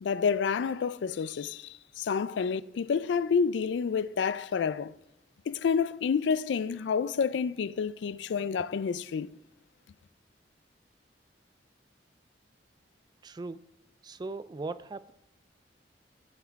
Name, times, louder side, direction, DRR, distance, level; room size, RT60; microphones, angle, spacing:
voice 1, 0.0-4.9 5.5-9.3, left 6 dB, 80° left, 0.3 m, -29 dB
voice 2, 13.2-13.6 14.0-15.1, right 3 dB, 25° right, 0.3 m, -38 dB
15.5 x 5.7 x 3.5 m
head